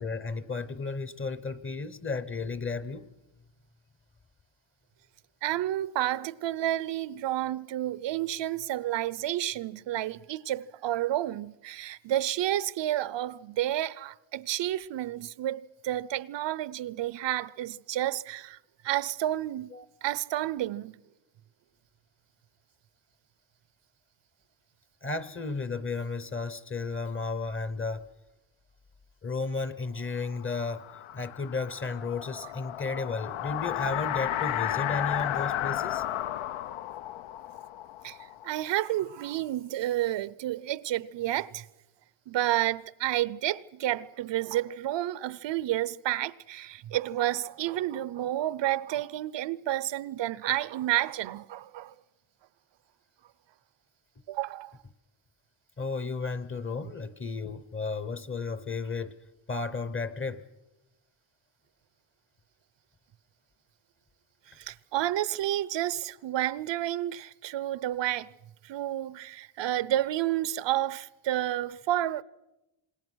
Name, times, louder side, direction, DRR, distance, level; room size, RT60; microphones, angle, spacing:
voice 1, 0.0-3.0 19.7-19.8 25.0-28.1 29.2-30.8 31.1-36.0 55.8-59.2 59.5-60.4, left 4 dB, 25° left, 0.9 m, -33 dB
voice 2, 5.4-18.6 18.8-19.7 20.0-21.0 38.0-38.2 38.4-41.7 42.3-51.9 54.3-54.7 64.6-68.3 68.6-72.2, right 13 dB, 60° right, 0.7 m, -30 dB
sound 1, 30.3-39.0, left 12 dB, 75° left, 0.8 m, -33 dB
27.5 x 20.5 x 6.3 m
cardioid pair, 135°, 49 cm